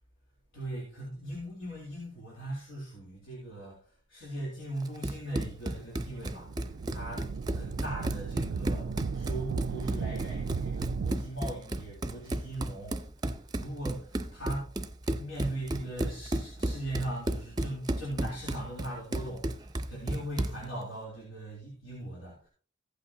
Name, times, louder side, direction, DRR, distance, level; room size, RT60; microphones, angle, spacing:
voice 1, 0.5-3.8 4.1-6.5 6.9-8.9 9.1-13.0 13.5-14.7 15.1-22.5, right 1 dB, 85° left, -4 dB, 3.5 m, -39 dB
Run, 4.8-20.6, right 1 dB, 20° right, 0.6 m, -34 dB
sound 1, 6.3-11.1, right 5 dB, 65° right, 0.4 m, -35 dB
15.0 x 8.6 x 2.8 m, 0.41 s
head